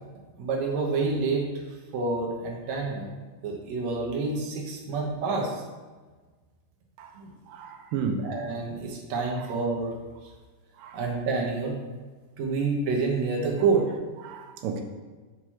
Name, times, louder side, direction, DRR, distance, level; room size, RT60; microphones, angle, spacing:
voice 1, 0.4-1.5 1.9-3.1 3.4-5.6 7.1-7.3 8.2-10.0 10.9-11.8 12.4-13.9, right 4 dB, 65° right, -1 dB, 1.9 m, -28 dB
voice 2, 7.5-8.3 10.8-11.0 12.5-12.6 14.2-14.8, right 5 dB, 85° right, 4 dB, 2.3 m, -33 dB
6.3 x 2.9 x 5.7 m, 1.3 s
omnidirectional pair, 3.9 m